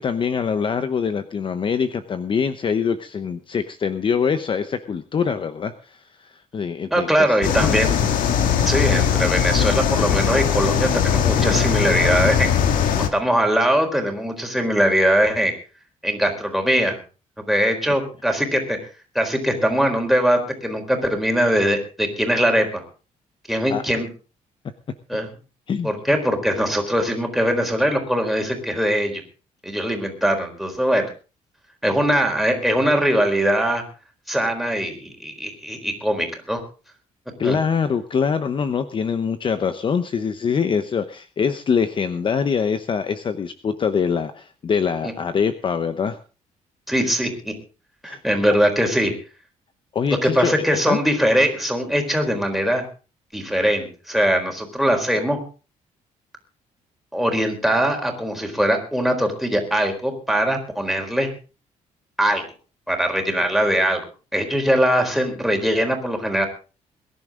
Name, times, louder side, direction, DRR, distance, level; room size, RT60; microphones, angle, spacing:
voice 1, 0.0-7.8 23.7-23.8 25.7-25.9 37.4-46.2 48.0-48.2 49.9-51.0, left 6 dB, 40° left, 10 dB, 0.9 m, -24 dB
voice 2, 6.9-7.9 8.6-12.6 12.9-15.5 16.0-17.0 17.4-18.8 19.1-22.8 23.5-24.1 25.1-25.3 25.8-29.2 29.6-31.1 31.8-33.8 34.3-36.6 37.4-37.6 46.9-47.5 48.0-49.1 50.2-52.9 53.3-55.4 57.1-61.3 62.2-62.4 62.9-64.0 64.3-66.5, equal, ahead, 3 dB, 4.3 m, -21 dB
sound 1, 7.4-13.1, left 8 dB, 85° left, 2.0 m, -20 dB
22.0 x 11.0 x 3.8 m, 0.35 s
cardioid pair, 120°, 14 cm